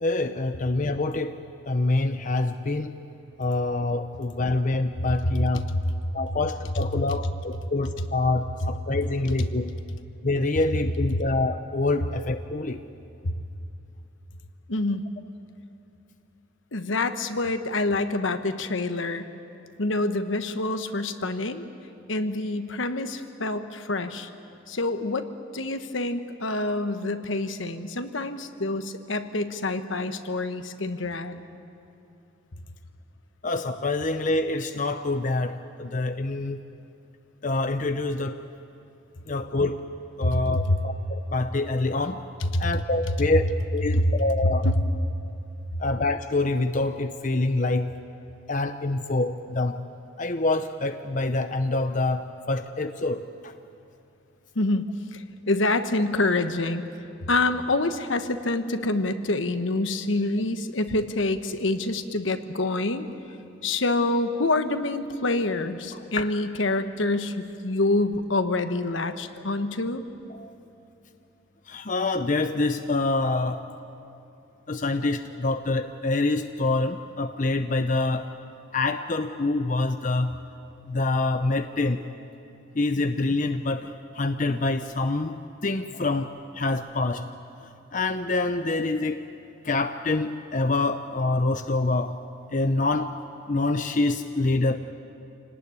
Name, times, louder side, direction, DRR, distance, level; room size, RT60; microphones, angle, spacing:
voice 1, 0.0-2.9 3.4-5.6 6.1-9.7 10.2-12.8 33.4-36.6 37.4-38.4 39.3-39.9 40.2-42.2 42.6-44.7 45.8-47.9 48.5-49.8 50.2-53.5 66.2-66.3 70.3-70.5 71.7-73.6 74.7-78.3 78.7-80.3 80.9-82.0 82.8-86.3 86.5-87.3 87.6-89.3 89.6-92.1 92.5-93.2 93.5-94.8, left 2 dB, 40° left, 8 dB, 0.7 m, -26 dB
voice 2, 14.7-15.0 16.7-19.3 19.8-21.7 22.1-24.3 24.7-25.3 25.5-31.4 40.2-40.8 42.5-42.7 43.9-44.1 44.6-44.7 54.5-55.2 55.5-56.8 57.3-63.1 63.6-70.0, left 2 dB, 75° left, 9 dB, 1.3 m, -26 dB
26.5 x 18.5 x 9.7 m, 2.7 s
head